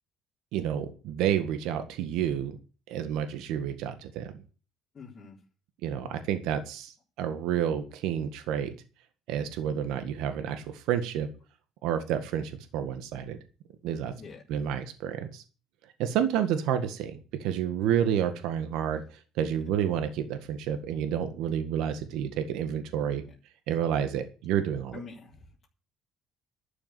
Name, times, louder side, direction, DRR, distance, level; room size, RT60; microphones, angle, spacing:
voice 1, 0.5-2.6 2.9-4.3 5.8-8.7 9.3-11.3 11.8-13.4 13.8-14.1 14.5-15.4 16.0-19.0 19.4-23.2 23.7-25.0, right 9 dB, 85° right, 8 dB, 1.7 m, -29 dB
voice 2, 4.9-5.4 14.2-14.4 24.9-25.7, left 4 dB, 35° left, -6 dB, 3.9 m, -45 dB
12.5 x 7.1 x 9.6 m, 0.35 s
cardioid pair, 110°, 0 cm